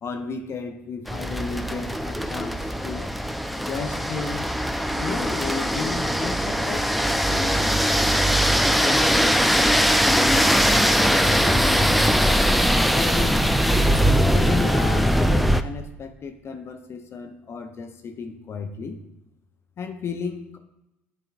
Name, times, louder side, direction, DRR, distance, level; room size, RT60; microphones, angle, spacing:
voice 1, 0.0-3.1 3.6-4.5 5.0-7.9 8.5-9.8 10.0-11.0 11.4-12.5 12.8-13.4 14.1-19.0 19.8-20.6, left 5 dB, 40° left, 5 dB, 0.7 m, -33 dB
sound 1, 1.1-15.6, equal, ahead, 0.4 m, -21 dB
10.5 x 3.8 x 2.5 m, 0.90 s
hypercardioid pair, 60°, 6 cm